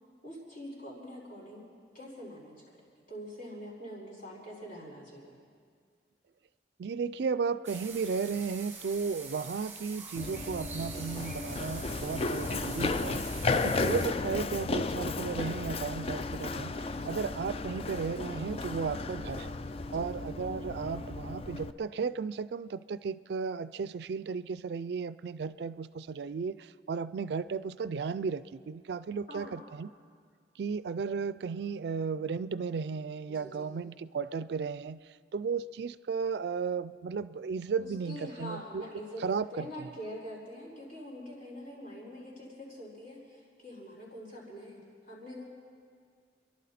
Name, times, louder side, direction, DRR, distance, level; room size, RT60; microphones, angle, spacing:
voice 1, 0.2-1.7 1.9-5.4 16.9-17.2 19.9-20.0 29.3-29.7 33.3-33.8 37.8-45.4, equal, 50° left, -5 dB, 4.7 m, -45 dB
voice 2, 6.8-16.7 17.0-19.5 19.9-29.9 30.6-35.0 35.3-38.8 39.2-39.7, right 5 dB, 65° right, 16 dB, 0.3 m, -34 dB
sound 1, 7.6-14.1, right 4 dB, 10° right, 1.3 m, -45 dB
Run, 10.2-21.7, left 3 dB, 35° left, 0.3 m, -34 dB
29.5 x 11.5 x 4.2 m, 2.1 s
head